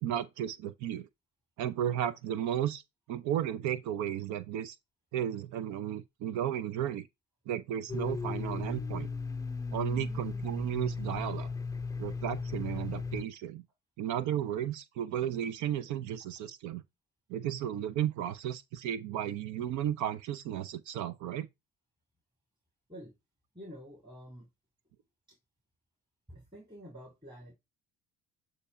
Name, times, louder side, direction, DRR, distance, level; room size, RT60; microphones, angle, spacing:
voice 1, 0.0-1.1 1.6-2.8 3.1-4.8 5.1-7.1 7.5-9.1 9.7-11.5 12.0-13.6 14.0-16.8 17.3-21.5, right 10 dB, 75° right, 0.6 m, -34 dB
Domestic sounds home sounds, 7.9-13.2, left 4 dB, 10° left, 0.4 m, -36 dB
voice 2, 23.5-24.5 25.3-25.4 26.3-27.5, equal, 15° right, 3.2 m, -48 dB
8.1 x 2.8 x 5.5 m
supercardioid pair, 80°, 29 cm